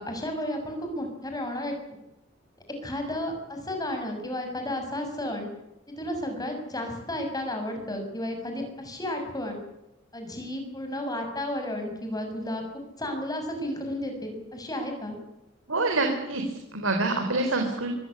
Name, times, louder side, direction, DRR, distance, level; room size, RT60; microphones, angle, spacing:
voice 1, 0.0-1.7 2.8-5.5 6.0-9.6 10.1-15.2, left 1 dB, 20° left, 4 dB, 6.8 m, -32 dB
voice 2, 15.7-17.9, right 2 dB, 85° right, 4 dB, 3.9 m, -26 dB
25.0 x 16.0 x 9.9 m, 0.94 s
head